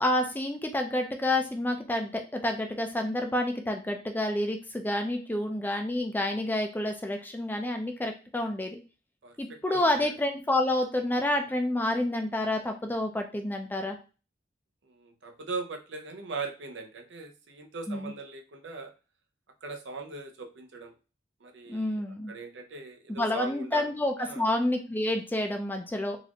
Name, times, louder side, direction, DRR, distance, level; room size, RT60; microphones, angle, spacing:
voice 1, 0.0-8.8 9.4-14.0 17.9-18.1 21.7-22.3 23.1-26.2, left 1 dB, 10° left, 4 dB, 0.4 m, -29 dB
voice 2, 9.2-10.1 14.8-18.9 19.6-20.9 21.4-22.0 22.3-23.9 24.2-24.4, right 3 dB, 80° right, 4 dB, 0.7 m, -40 dB
4.0 x 2.5 x 2.8 m, 0.33 s
head